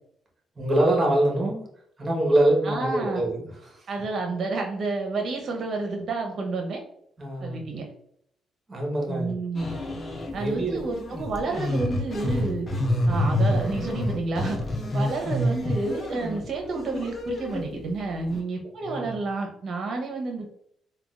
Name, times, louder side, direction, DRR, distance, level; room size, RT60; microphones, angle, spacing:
voice 1, 0.6-1.7 2.0-3.8 7.2-7.7 8.7-9.3 10.3-10.8 18.8-19.2, right 1 dB, 30° right, 0 dB, 1.1 m, -24 dB
voice 2, 2.6-3.2 3.9-6.8 7.4-7.8 9.1-9.8 10.3-12.7 13.1-14.6 14.9-20.5, right 3 dB, 60° right, 2 dB, 0.8 m, -30 dB
sound 1, 9.6-10.4 10.8-17.7 18.3-18.4, left 1 dB, 35° left, 0.7 m, -28 dB
3.6 x 2.3 x 2.4 m, 0.68 s
cardioid pair, 90°, 0 cm